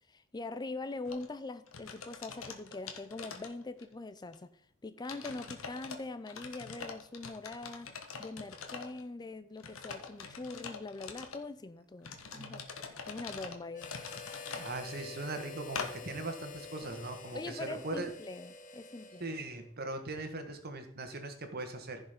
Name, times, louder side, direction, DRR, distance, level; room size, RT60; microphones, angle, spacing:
voice 1, 0.1-4.5 4.8-7.9 8.2-12.6 13.1-13.9 17.3-19.3, left 3 dB, 20° left, 0.4 m, -43 dB
sound 1, 1.1-1.3 1.7-3.9 4.3-4.4 5.0-6.0 6.3-9.0 9.6-11.4 12.0-14.7 15.7-15.9, left 5 dB, 85° left, 1.4 m, -44 dB
Harmonica, 13.7-19.8, left 5 dB, 40° left, 1.1 m, -48 dB
voice 2, 14.5-18.1 19.2-22.0, right 2 dB, 50° right, 1.5 m, -40 dB
15.0 x 5.4 x 5.1 m
head